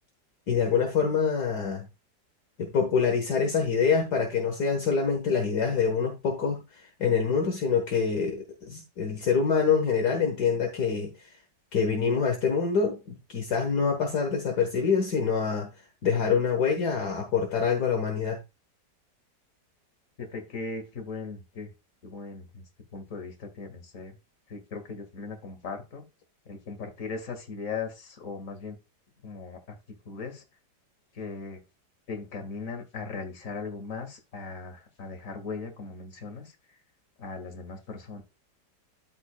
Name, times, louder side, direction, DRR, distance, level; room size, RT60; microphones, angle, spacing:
voice 1, 0.5-1.9 2.6-11.3 11.7-15.7 16.0-18.4, left 6 dB, 65° left, 1.9 m, -26 dB
voice 2, 20.2-21.7 22.0-22.6 22.9-24.2 24.5-26.0 26.5-28.8 29.2-29.6 30.1-30.4 31.1-31.6 32.1-36.8 37.2-38.2, left 4 dB, 45° left, 2.2 m, -38 dB
13.0 x 5.4 x 2.3 m
omnidirectional pair, 1.9 m